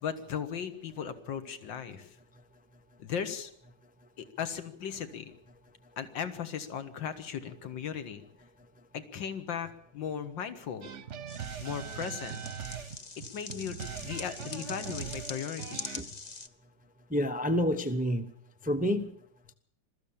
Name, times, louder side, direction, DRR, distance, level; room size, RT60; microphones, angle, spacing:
voice 1, 0.0-2.2 3.0-3.5 4.2-5.3 6.0-8.2 8.9-10.9 11.6-12.4 13.3-13.8 14.0-16.0, left 8 dB, 75° left, 2.2 m, -37 dB
sound 1, 10.8-16.0, right 7 dB, 50° right, 1.0 m, -41 dB
sound 2, 11.3-16.5, left 4 dB, 30° left, 0.8 m, -44 dB
voice 2, 17.1-18.3 18.6-19.1, equal, 10° right, 0.4 m, -28 dB
21.5 x 14.0 x 8.6 m
omnidirectional pair, 2.0 m